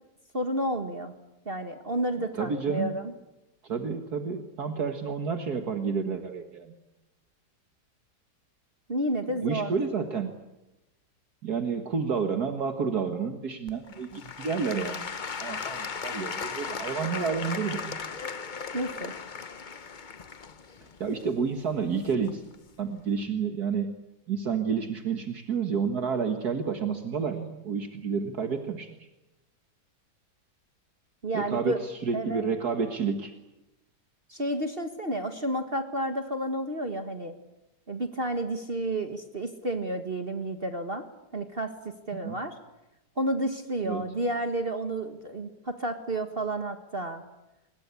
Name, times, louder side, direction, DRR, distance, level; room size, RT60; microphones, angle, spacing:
voice 1, 0.3-1.1 1.4-3.1 8.9-9.7 18.7-19.1 31.2-31.8 32.1-32.4 34.3-37.4 37.9-41.1 41.3-42.6 43.2-47.2, right 1 dB, 35° right, 7 dB, 1.7 m, -31 dB
voice 2, 2.3-2.9 3.6-6.8 9.3-10.3 11.4-15.1 15.4-18.0 21.0-22.4 22.8-23.9 24.3-29.0 31.3-33.3 42.2-42.4 43.8-44.0, right 6 dB, 65° right, 6 dB, 2.1 m, -30 dB
Applause / Crowd, 13.7-22.5 23.2-23.3, left 5 dB, 35° left, 0.8 m, -37 dB
26.0 x 22.0 x 8.4 m, 0.96 s
omnidirectional pair, 1.8 m